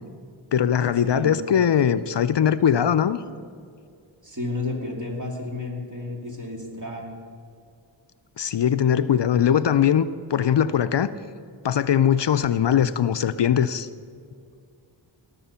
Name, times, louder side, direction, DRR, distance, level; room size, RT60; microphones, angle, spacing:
voice 1, 0.5-3.2 8.4-11.1 11.6-13.9, left 9 dB, 65° left, 13 dB, 0.5 m, -21 dB
voice 2, 1.0-1.3 4.2-7.2, left 2 dB, 40° right, 0 dB, 2.7 m, -32 dB
18.5 x 6.9 x 5.6 m, 2.3 s
wide cardioid pair, 45°, 47 cm